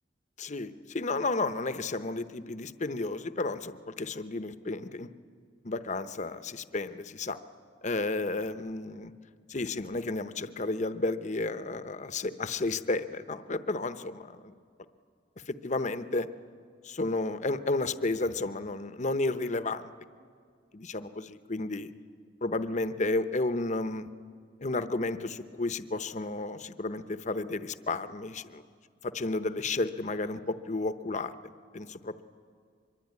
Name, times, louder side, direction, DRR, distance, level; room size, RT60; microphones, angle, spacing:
voice 1, 0.4-5.1 5.6-7.4 7.8-9.1 9.5-14.5 15.5-16.3 16.8-19.9 20.7-21.9 22.4-24.1 24.6-28.6 29.0-31.3 31.7-32.2, left 2 dB, 40° left, 11 dB, 0.9 m, -32 dB
24.5 x 22.5 x 9.6 m, 2.2 s
head